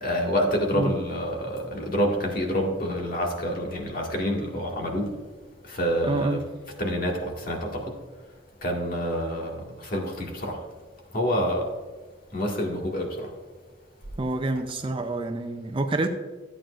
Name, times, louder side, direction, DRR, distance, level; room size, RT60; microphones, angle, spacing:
voice 1, 0.0-5.1 5.7-6.4 6.8-7.9 8.6-10.6 11.1-11.7 12.3-13.3, equal, 45° left, 0 dB, 1.9 m, -27 dB
voice 2, 6.0-6.4 14.2-16.1, right 2 dB, 25° right, 6 dB, 0.5 m, -27 dB
14.0 x 8.9 x 2.5 m, 1.3 s
head